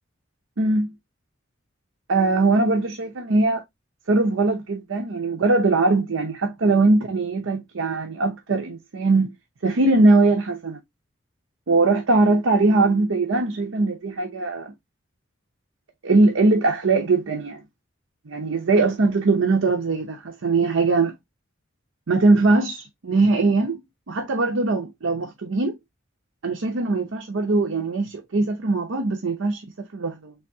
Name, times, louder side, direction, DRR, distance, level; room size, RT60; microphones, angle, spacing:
voice 1, 0.6-0.9 2.1-3.6 4.1-9.3 9.6-10.8 11.7-14.7 16.0-17.6 18.3-21.1 22.1-23.8 24.1-25.7 26.4-30.3, right 3 dB, 90° right, 0.7 m, -21 dB
3.5 x 3.4 x 2.6 m
head